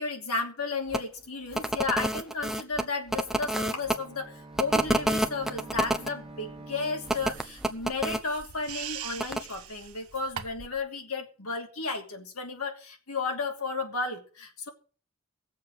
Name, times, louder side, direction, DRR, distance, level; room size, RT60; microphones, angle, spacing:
voice 1, 0.0-14.7, left 4 dB, 85° left, 2 dB, 2.8 m, -33 dB
sound 1, 0.9-1.0 1.5-3.9 4.6-6.1 7.1-8.2 9.2-9.4, right 1 dB, ahead, 0.8 m, -28 dB
Bowed string instrument, 3.4-8.1, right 2 dB, 25° right, 1.5 m, -47 dB
sound 2, 7.0-10.8, right 8 dB, 80° right, 1.1 m, -42 dB
18.0 x 7.4 x 6.4 m, 0.40 s
head